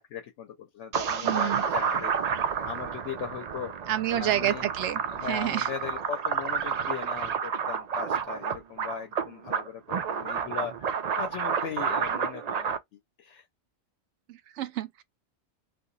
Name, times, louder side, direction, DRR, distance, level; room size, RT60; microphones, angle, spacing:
voice 1, 0.0-2.1 2.6-3.7 4.1-4.7 5.1-13.5, left 8 dB, 85° left, 1.0 m, -38 dB
sound 1, 0.9-12.8, right 6 dB, 55° right, 0.4 m, -30 dB
voice 2, 1.2-1.6 3.9-5.7 14.3-15.0, right 12 dB, 80° right, 0.9 m, -29 dB
2.8 x 2.4 x 3.9 m
omnidirectional pair, 1.2 m